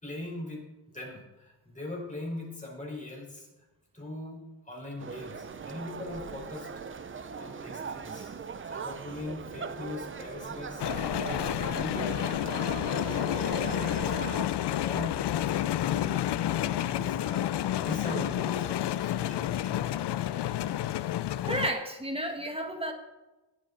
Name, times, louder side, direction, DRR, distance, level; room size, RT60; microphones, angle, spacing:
voice 1, 0.0-3.5 3.9-6.7 7.3-8.3 8.6-12.3 12.9-20.1, left 2 dB, 20° left, -3 dB, 5.2 m, -41 dB
sound 1, 5.0-14.5, right 5 dB, 30° right, 0.7 m, -39 dB
sound 2, 10.8-21.7, left 12 dB, 70° left, 0.6 m, -30 dB
voice 2, 21.4-22.9, right 1 dB, 15° right, 4 dB, 1.7 m, -32 dB
19.0 x 7.7 x 4.2 m, 1.1 s
wide cardioid pair, 125°, 42 cm